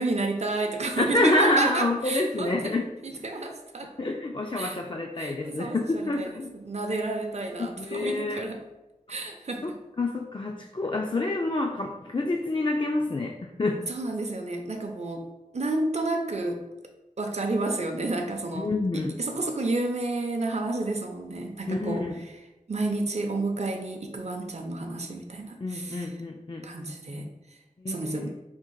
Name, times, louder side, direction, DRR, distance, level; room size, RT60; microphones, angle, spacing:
voice 1, 0.0-2.8 3.0-3.9 4.6-4.8 5.2-8.6 9.1-9.7 13.9-15.3 15.5-16.6 17.2-22.3 22.7-26.1 26.6-27.6 27.9-28.3, right 2 dB, 50° right, 3 dB, 0.5 m, -31 dB
voice 2, 1.0-2.9 3.2-3.3 4.0-6.5 7.6-8.4 9.6-9.7 10.0-13.8 18.5-19.1 21.7-22.1 25.6-26.6 27.8-28.3, left 2 dB, 35° left, 1 dB, 0.3 m, -27 dB
3.6 x 2.4 x 4.5 m, 1.0 s
wide cardioid pair, 40°, 14 cm